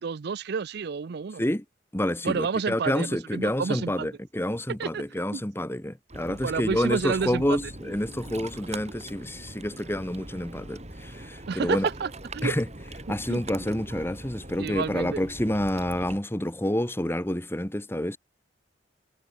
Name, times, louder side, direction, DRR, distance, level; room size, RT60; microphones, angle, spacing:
voice 1, 0.0-1.4 2.2-4.1 4.8-5.0 5.3-5.4 6.3-7.6 11.5-12.6 13.3-13.4 14.6-15.2, right 5 dB, 60° right, 0.5 m, -30 dB
voice 2, 1.9-11.9 12.4-12.6 13.1-18.2, left 1 dB, 15° left, 1.7 m, -28 dB
Ocean, 6.1-16.2, right 2 dB, 35° right, 4.3 m, -41 dB
head